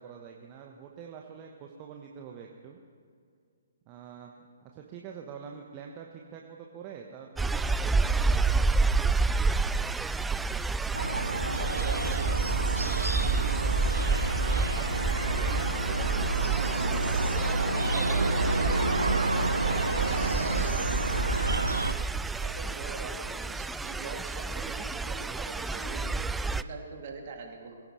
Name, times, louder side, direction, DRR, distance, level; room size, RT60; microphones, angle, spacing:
voice 1, 0.0-2.8 3.9-4.3 4.6-9.2, right 7 dB, 30° right, 2 dB, 1.1 m, -46 dB
sound 1, 7.4-26.6, right 3 dB, 5° right, 0.3 m, -29 dB
sound 2, 10.9-21.9, right 2 dB, 75° right, 0.8 m, -29 dB
voice 2, 11.2-19.1 19.6-20.8 21.9-27.8, right 4 dB, 45° right, 1 dB, 2.6 m, -44 dB
23.0 x 16.0 x 3.2 m, 2.2 s
figure-of-eight pair, 130°, 0 cm